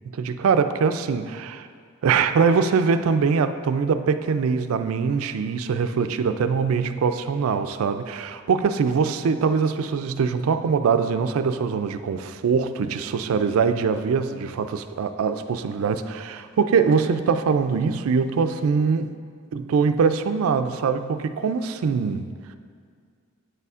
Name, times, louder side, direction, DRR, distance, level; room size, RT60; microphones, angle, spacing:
voice 1, 0.2-1.7 2.0-19.1 19.5-22.3, right 5 dB, 70° right, 10 dB, 0.3 m, -23 dB
8.9 x 6.7 x 2.4 m, 2.1 s
head